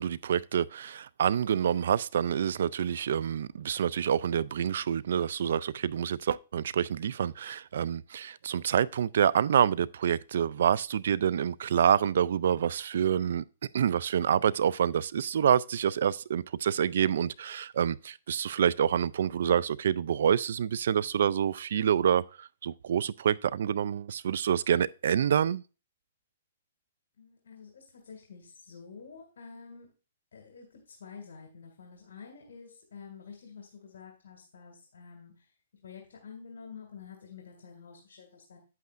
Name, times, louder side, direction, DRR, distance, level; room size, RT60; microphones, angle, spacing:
voice 1, 0.0-13.4 13.7-25.6, right 8 dB, 70° right, 0.3 m, -27 dB
voice 2, 27.2-29.9 30.3-35.5 35.8-38.6, left 6 dB, 75° left, 2.0 m, -49 dB
8.9 x 8.3 x 2.5 m
hypercardioid pair, 145°, 0 cm